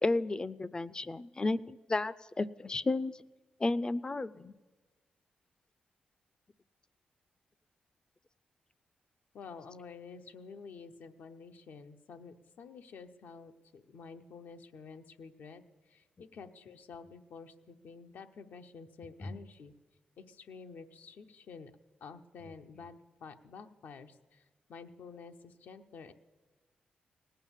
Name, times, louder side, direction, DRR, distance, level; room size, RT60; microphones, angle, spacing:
voice 1, 0.0-3.2 3.6-4.5 19.2-19.4, left 2 dB, 25° left, 18 dB, 0.4 m, -32 dB
voice 2, 9.3-15.6 15.9-19.7 20.2-21.7 22.0-26.1, left 5 dB, 75° left, 6 dB, 0.8 m, -50 dB
18.0 x 9.1 x 7.3 m, 1.3 s
cardioid pair, 75°, 3 cm